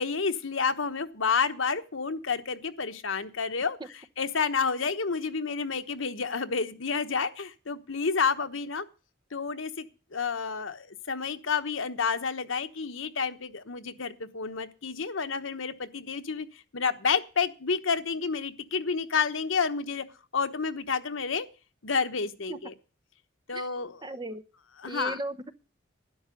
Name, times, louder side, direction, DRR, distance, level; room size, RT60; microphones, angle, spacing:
voice 1, 0.0-3.8 4.2-8.9 9.3-16.5 16.7-20.0 20.3-21.5 21.8-22.7 23.5-24.0 24.8-25.2, left 5 dB, 80° left, 1.1 m, -30 dB
voice 2, 24.0-24.4 24.9-25.5, right 2 dB, 20° right, 0.9 m, -36 dB
12.5 x 10.5 x 5.1 m
head